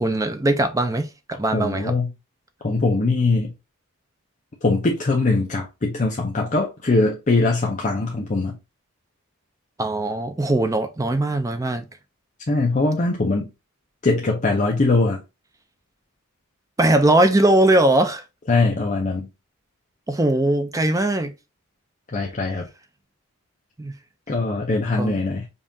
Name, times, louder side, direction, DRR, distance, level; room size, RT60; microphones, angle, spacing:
voice 1, 0.0-2.0 9.8-11.8 16.8-18.2 20.1-21.3 23.8-23.9 25.0-25.2, right 1 dB, 15° right, 0.4 m, -20 dB
voice 2, 1.5-2.1 2.6-3.5 4.6-8.6 12.5-13.5 14.0-15.2 18.5-19.3 22.1-22.7 24.3-25.5, left 3 dB, 35° left, 0.6 m, -21 dB
5.3 x 2.4 x 2.7 m
head